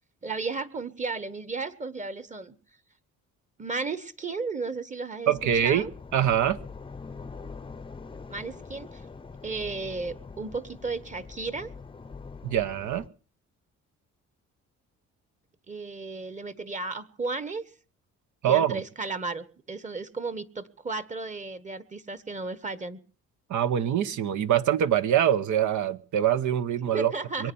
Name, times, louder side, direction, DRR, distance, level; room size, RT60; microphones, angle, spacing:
voice 1, 0.2-2.6 3.6-5.3 5.6-5.9 8.3-9.0 9.4-11.7 15.7-17.6 18.4-23.0 26.9-27.5, right 3 dB, 25° right, 15 dB, 1.2 m, -34 dB
sound 1, 5.3-13.1, left 4 dB, 15° left, 0.7 m, -43 dB
voice 2, 5.3-6.6 12.4-13.1 18.4-18.8 23.5-27.1 27.4-27.5, right 10 dB, 75° right, 12 dB, 1.0 m, -24 dB
22.5 x 9.0 x 7.0 m, 0.42 s
cardioid pair, 90°, 30 cm